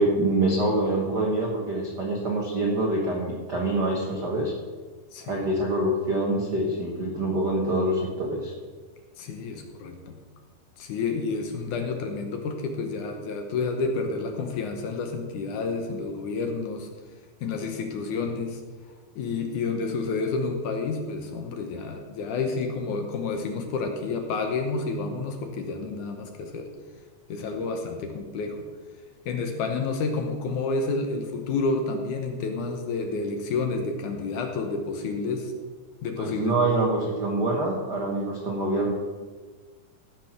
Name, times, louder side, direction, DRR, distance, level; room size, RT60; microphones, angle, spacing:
voice 1, 0.0-4.5 5.2-8.5 36.2-38.9, right 2 dB, 80° right, -1 dB, 0.9 m, -25 dB
voice 2, 5.1-5.5 9.2-10.2 10.8-16.9 17.4-18.6 19.2-26.7 27.3-28.6 29.3-35.5 36.0-36.9, left 4 dB, 70° left, 4 dB, 2.2 m, -30 dB
15.5 x 6.1 x 5.9 m, 1.4 s
omnidirectional pair, 4.2 m